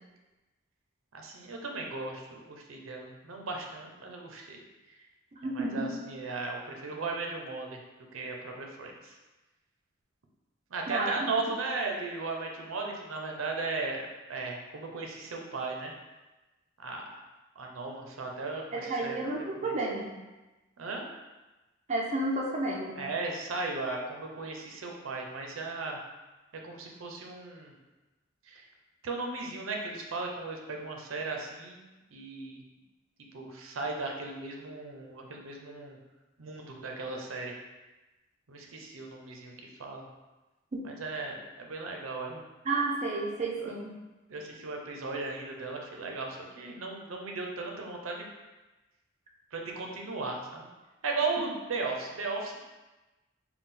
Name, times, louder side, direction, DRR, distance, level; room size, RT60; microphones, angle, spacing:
voice 1, 1.1-4.6 5.5-7.8 8.1-9.2 10.7-15.9 16.8-17.1 17.6-19.2 19.6-19.8 20.8-21.1 23.0-26.0 26.6-27.7 28.5-28.7 29.0-31.8 32.1-32.6 33.3-36.0 36.4-37.5 38.5-40.0 40.8-42.4 43.6-43.7 44.3-48.3 49.5-50.7 51.0-52.6, right 3 dB, 85° right, 1 dB, 0.6 m, -36 dB
voice 2, 5.3-5.9 10.9-11.3 18.7-20.1 21.9-23.0 40.7-40.8 42.6-44.0, right 2 dB, 35° right, -1 dB, 0.4 m, -31 dB
4.1 x 2.2 x 3.7 m, 1.1 s
head